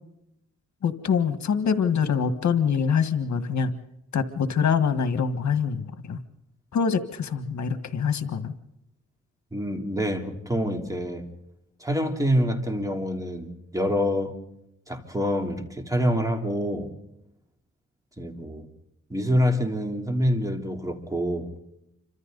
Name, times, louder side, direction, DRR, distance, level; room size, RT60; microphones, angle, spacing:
voice 1, 0.8-3.7 4.1-6.2 6.7-8.5, left 6 dB, 70° left, 10 dB, 1.7 m, -24 dB
voice 2, 9.5-11.2 11.8-14.3 14.9-16.9 18.2-18.7 19.1-21.5, equal, 10° right, 4 dB, 3.5 m, -26 dB
28.0 x 25.5 x 4.1 m, 0.81 s
cardioid pair, 100°, 29 cm